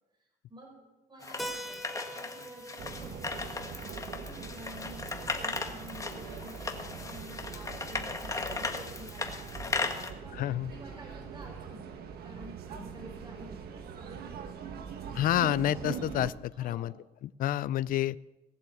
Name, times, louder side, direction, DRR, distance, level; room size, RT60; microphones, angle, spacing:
voice 1, 0.1-1.9 2.1-10.4 10.7-14.9 16.5-17.0, equal, 25° right, 1 dB, 4.5 m, -50 dB
sound 1, 1.2-10.1, left 3 dB, 20° left, 1.6 m, -37 dB
Keyboard (musical), 1.4-5.8, equal, ahead, 1.0 m, -45 dB
sound 2, 2.8-16.3, right 7 dB, 65° right, 1.5 m, -42 dB
voice 2, 10.4-10.7 15.1-16.9 17.4-18.2, left 13 dB, 55° left, 18 dB, 0.4 m, -29 dB
18.5 x 7.4 x 7.8 m, 1.1 s
cardioid pair, 110°, 17 cm